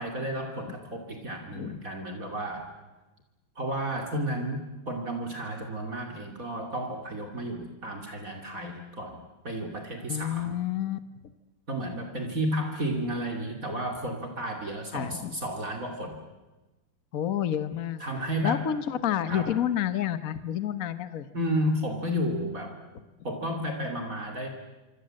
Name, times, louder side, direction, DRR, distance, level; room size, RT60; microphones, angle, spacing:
voice 1, 0.0-2.7 3.6-10.5 11.7-16.2 18.0-18.7 19.3-19.6 21.3-22.8 23.2-24.5, equal, 45° right, 2 dB, 3.0 m, -32 dB
voice 2, 10.1-11.0 14.9-15.3 17.1-18.0 18.4-21.3, left 10 dB, 50° left, 12 dB, 1.4 m, -29 dB
26.5 x 25.5 x 7.7 m, 1.1 s
omnidirectional pair, 2.1 m